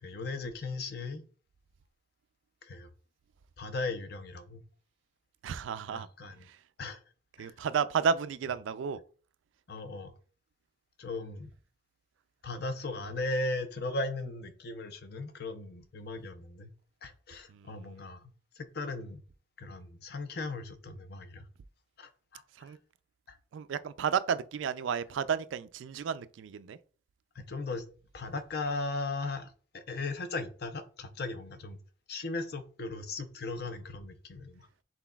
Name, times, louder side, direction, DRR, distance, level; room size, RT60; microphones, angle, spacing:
voice 1, 0.0-1.2 2.6-2.9 3.6-4.6 5.9-6.5 6.8-7.0 7.4-7.5 9.7-10.1 11.0-11.5 12.4-16.7 17.0-19.2 19.6-21.5 22.0-22.7 23.3-23.4 27.3-27.9 28.1-31.8 32.1-34.7, left 2 dB, 55° left, 0.6 m, -37 dB
voice 2, 5.4-6.1 6.5-6.6 7.4-9.0 17.5-17.7 22.6-22.8 23.5-26.8, right 6 dB, 85° right, 0.3 m, -32 dB
6.0 x 3.8 x 2.3 m
head